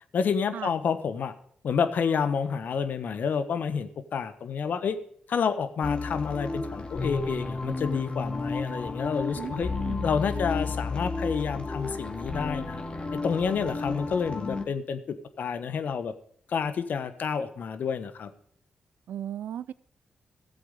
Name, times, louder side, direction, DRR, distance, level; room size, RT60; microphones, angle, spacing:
voice 1, 0.1-1.3 1.6-5.0 5.3-9.7 10.0-12.8 13.1-16.1 16.5-18.3, left 6 dB, 70° left, 1.2 m, -29 dB
sound 1, 5.8-14.6, left 3 dB, 35° left, 2.3 m, -32 dB
voice 2, 9.4-10.1 19.1-19.7, right 10 dB, 80° right, 0.5 m, -36 dB
15.0 x 7.8 x 5.2 m
supercardioid pair, 50°, 3 cm